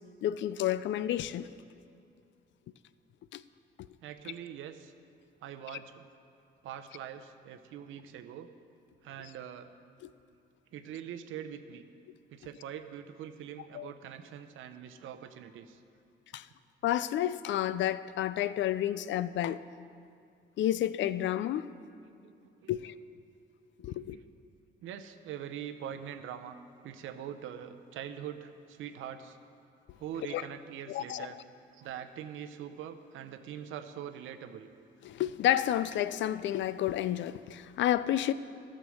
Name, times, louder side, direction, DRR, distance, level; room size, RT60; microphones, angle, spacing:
voice 1, 0.2-1.5 3.3-3.4 13.7-13.9 16.3-16.4 16.8-19.6 20.6-21.7 22.7-22.9 23.8-24.2 30.3-30.4 30.9-31.3 35.0-38.3, left 12 dB, 70° left, 0.4 m, -30 dB
voice 2, 4.0-4.9 5.4-6.0 6.6-8.5 9.0-9.7 10.7-11.8 12.3-15.8 22.1-22.7 23.9-24.2 24.8-26.6 26.8-29.4 30.0-31.4 31.7-34.7, right 9 dB, 85° right, 0.7 m, -43 dB
12.5 x 6.6 x 6.3 m
cardioid pair, 90°, 20 cm